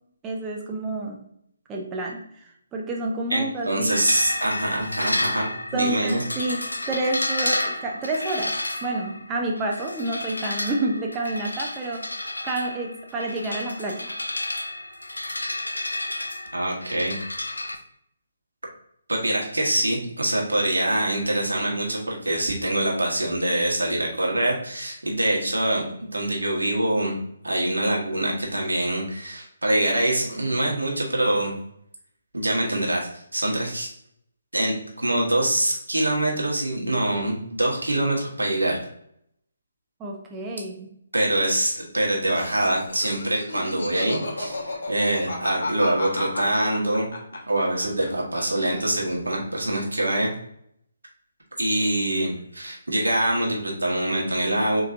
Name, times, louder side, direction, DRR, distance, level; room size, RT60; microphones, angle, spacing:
voice 1, 0.2-1.2 1.7-4.0 5.4-8.6 8.8-14.1 40.0-40.9, right 2 dB, 15° right, 0 dB, 0.5 m, -29 dB
voice 2, 3.3-6.2 16.5-17.2 19.1-25.8 26.1-27.2 27.4-31.5 32.3-33.9 34.5-38.8 41.1-47.1 47.5-50.3 51.6-54.8, right 1 dB, 85° right, -1 dB, 1.2 m, -24 dB
sound 1, 3.9-17.7, left 1 dB, 85° left, 0.5 m, -31 dB
Laughter, 42.3-48.1 48.3-49.1, left 2 dB, 65° left, 1.1 m, -33 dB
4.0 x 2.9 x 2.7 m, 0.71 s
figure-of-eight pair, 145°, 0 cm